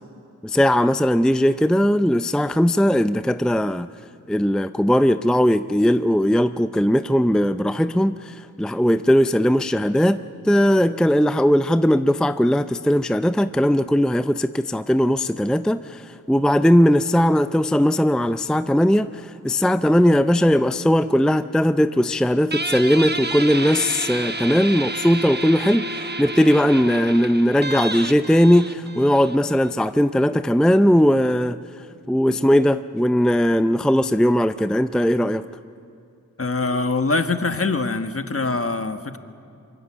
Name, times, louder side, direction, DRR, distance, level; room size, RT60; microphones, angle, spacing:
voice 1, 0.4-3.9 4.3-31.6 32.1-35.4, equal, ahead, 11 dB, 0.5 m, -19 dB
Guitar, 22.5-29.7, right 2 dB, 30° right, 1.2 m, -30 dB
voice 2, 36.4-39.2, left 3 dB, 45° left, 8 dB, 1.4 m, -23 dB
25.5 x 24.0 x 7.3 m, 2.7 s
wide cardioid pair, 75°, 32 cm